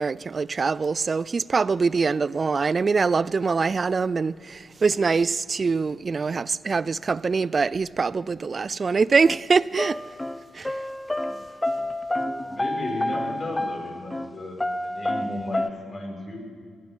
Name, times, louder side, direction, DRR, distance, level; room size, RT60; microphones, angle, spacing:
voice 1, 0.0-10.0 10.5-10.8, right 4 dB, 45° right, 0.3 m, -24 dB
sound 1, 9.2-9.4 9.7-14.3 14.6-15.7, left 1 dB, 15° left, 0.6 m, -29 dB
voice 2, 12.4-16.4, left 1 dB, 50° left, 5.0 m, -34 dB
21.5 x 9.3 x 7.3 m
supercardioid pair, 55°, 0 cm